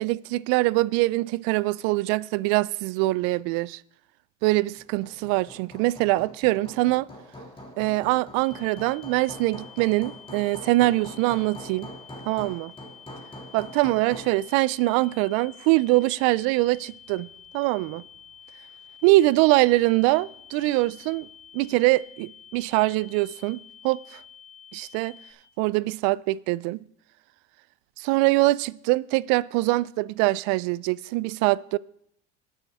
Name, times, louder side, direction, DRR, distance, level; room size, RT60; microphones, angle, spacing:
voice 1, 0.0-3.8 4.4-7.1 7.8-11.9 12.3-12.7 13.5-17.3 17.5-18.0 19.0-21.3 21.5-24.2 24.7-25.2 25.6-26.8 28.0-31.8, right 20 dB, 70° right, 0.5 m, -23 dB
Hammer, 4.8-14.4, equal, 15° left, 2.5 m, -44 dB
sound 1, 8.4-25.3, left 8 dB, 80° left, 2.8 m, -49 dB
18.5 x 7.1 x 3.6 m
supercardioid pair, 100°, 37 cm